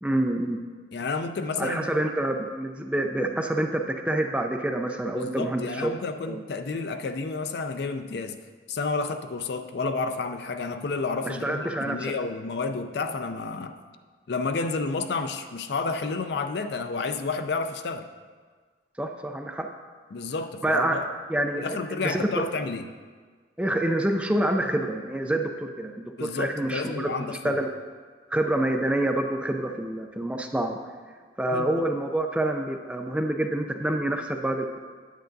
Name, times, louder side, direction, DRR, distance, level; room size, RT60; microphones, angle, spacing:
voice 1, 0.0-0.6 1.6-5.9 6.3-6.4 11.2-12.1 19.0-19.7 20.6-21.0 21.3-22.3 23.6-27.1 27.4-27.7 28.3-30.8 31.4-34.8, right 1 dB, 5° right, 3 dB, 0.4 m, -27 dB
voice 2, 0.9-2.0 5.1-8.4 8.7-13.8 14.3-18.1 20.1-21.0 21.6-22.8 26.2-27.6 31.5-31.8, left 4 dB, 60° left, 8 dB, 0.4 m, -30 dB
9.1 x 8.5 x 2.6 m, 1.5 s
head